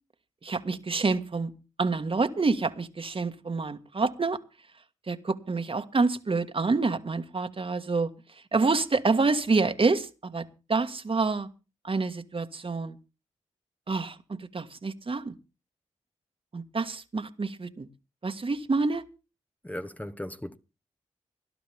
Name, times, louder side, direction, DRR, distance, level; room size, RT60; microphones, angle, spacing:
voice 1, 0.4-1.5 1.8-4.4 5.1-8.1 8.5-11.5 11.8-13.0 13.9-15.3 16.5-17.9 18.2-19.0, right 3 dB, 45° right, 1.7 m, -27 dB
voice 2, 19.6-20.6, left 1 dB, 10° left, 1.2 m, -37 dB
19.5 x 11.5 x 3.5 m
supercardioid pair, 40°, 13 cm